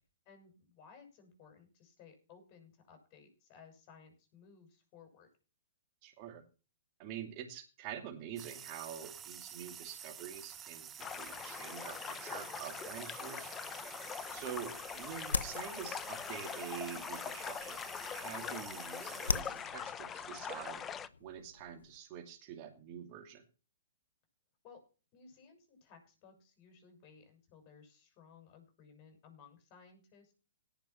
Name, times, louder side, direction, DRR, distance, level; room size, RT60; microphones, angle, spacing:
voice 1, 0.2-5.3 18.4-18.6 24.6-24.8 25.1-30.3, left 5 dB, 35° left, 6 dB, 6.3 m, -59 dB
voice 2, 6.0-6.4 7.0-13.5 14.3-17.8 18.1-20.8 21.2-23.4, right 9 dB, 40° right, 3 dB, 2.6 m, -46 dB
sound 1, 8.4-19.4, right 9 dB, 20° right, 0.9 m, -50 dB
sound 2, 11.0-21.1, left 8 dB, 20° left, 0.7 m, -43 dB
sound 3, 14.3-22.0, left 4 dB, 90° left, 0.7 m, -43 dB
17.5 x 5.8 x 5.9 m, 0.34 s
hypercardioid pair, 130°, 0 cm